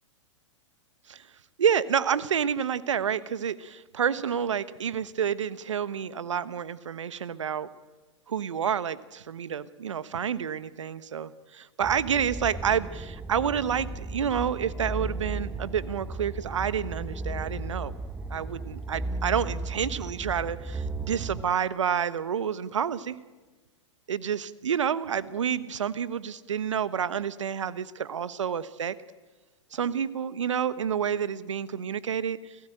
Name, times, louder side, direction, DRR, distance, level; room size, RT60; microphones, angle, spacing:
voice 1, 1.6-7.7 8.3-17.9 18.3-23.2 24.1-29.0 29.7-32.6, right 8 dB, 75° right, 16 dB, 1.2 m, -29 dB
sound 1, 11.8-21.4, right 2 dB, 10° right, 1.1 m, -35 dB
29.0 x 17.5 x 9.0 m, 1.2 s
hypercardioid pair, 105°, 16 cm